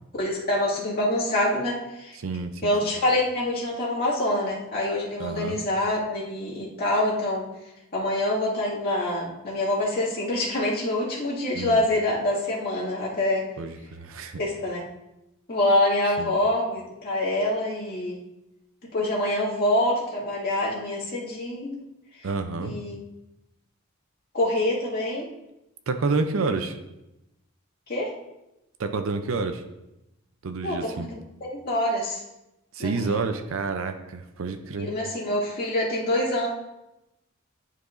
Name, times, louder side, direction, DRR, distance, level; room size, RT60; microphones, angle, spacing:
voice 1, 0.2-2.2 2.6-7.4 7.9-13.5 14.4-14.8 15.5-18.2 18.9-21.8 22.6-23.0 24.3-25.3 27.9-28.1 30.6-31.1 31.4-32.2 32.8-33.2 34.8-36.5, left 1 dB, 50° left, -6 dB, 2.1 m, -26 dB
voice 2, 2.2-2.9 5.2-5.6 11.5-11.8 13.6-14.4 16.2-16.3 22.2-22.7 25.9-26.8 28.8-29.6 30.4-31.1 32.7-34.9, right 4 dB, 75° right, 7 dB, 0.5 m, -29 dB
10.5 x 4.8 x 2.5 m, 0.92 s
head